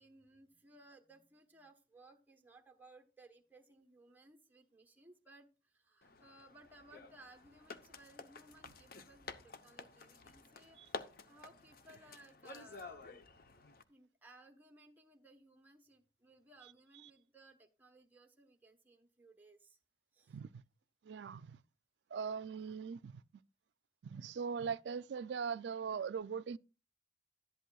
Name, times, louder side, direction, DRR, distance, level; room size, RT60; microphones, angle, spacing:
voice 1, 0.0-13.3 13.9-19.8 20.1-20.4 22.5-22.7, right 2 dB, 10° right, 1.0 m, -61 dB
sound 1, 6.0-13.8, left 3 dB, 55° left, 0.8 m, -51 dB
voice 2, 20.3-20.6 21.0-21.6 22.1-23.2 24.0-26.6, right 6 dB, 75° right, 0.4 m, -40 dB
11.5 x 11.0 x 2.3 m
head